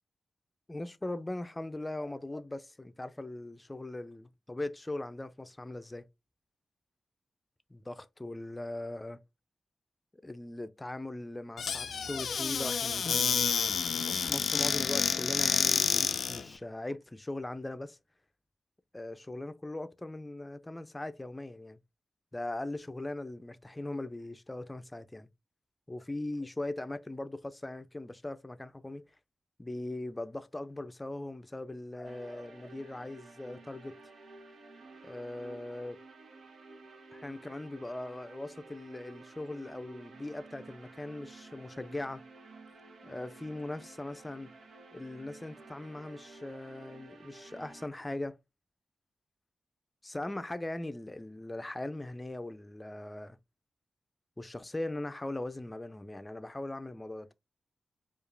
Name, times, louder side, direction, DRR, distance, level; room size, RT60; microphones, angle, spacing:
voice 1, 0.7-6.1 7.7-9.2 10.2-18.0 18.9-21.8 22.3-25.3 25.9-29.0 29.6-34.0 35.0-36.0 37.1-42.2 43.0-44.5 44.9-48.4 50.0-53.4 54.4-57.3, left 2 dB, 20° left, 0.5 m, -40 dB
Squeak / Cupboard open or close, 11.6-16.4, left 6 dB, 80° left, 0.3 m, -29 dB
sound 1, 32.0-47.9, right 3 dB, 80° right, 0.9 m, -52 dB
4.7 x 2.5 x 3.2 m
cardioid pair, 55°, 0 cm